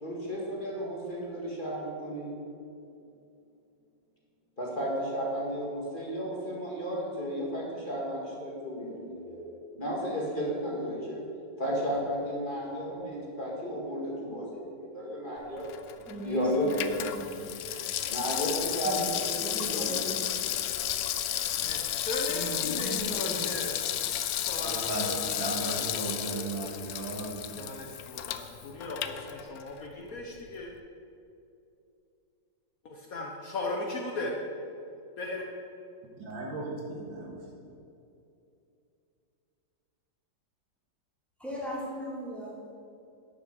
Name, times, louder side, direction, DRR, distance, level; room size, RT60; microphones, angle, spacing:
voice 1, 0.0-2.4 4.6-9.5 9.8-11.2 11.6-15.7 16.2-17.2 18.1-20.0 20.3-20.4, equal, 25° left, -4 dB, 1.9 m, -33 dB
Water tap faucet / Sink (filling or washing), 15.6-29.9 30.2-30.3, left 11 dB, 75° left, 0.8 m, -33 dB
voice 2, 16.1-17.5 18.8-20.2 22.3-23.5 41.4-42.7, equal, ahead, -7 dB, 2.6 m, -38 dB
voice 3, 21.6-23.8 24.4-26.4 27.6-30.7 32.8-34.3 35.2-35.4, left 2 dB, 55° left, 0 dB, 1.2 m, -37 dB
voice 4, 24.6-27.7 36.2-37.4, right 2 dB, 90° right, -1 dB, 2.3 m, -36 dB
9.7 x 7.0 x 6.4 m, 2.7 s
omnidirectional pair, 2.0 m